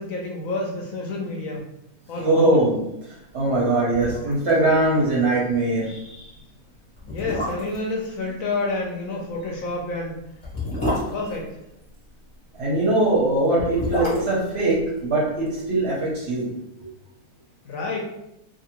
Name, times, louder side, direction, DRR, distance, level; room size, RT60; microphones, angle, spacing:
voice 1, 0.0-1.7 2.1-2.6 7.1-10.2 10.9-11.5 17.6-18.0, left 2 dB, 70° left, -1 dB, 0.9 m, -29 dB
voice 2, 2.2-2.8 3.3-6.3 12.5-16.5, right 2 dB, 55° right, -5 dB, 0.8 m, -21 dB
sound 1, 3.9-4.6 4.8-4.9 5.3-5.5 6.2-6.3 7.0-7.9 9.4-12.1 13.4-15.6 15.9-16.0, left 1 dB, 25° left, 0.7 m, -30 dB
2.6 x 2.5 x 2.9 m, 0.84 s
omnidirectional pair, 1.6 m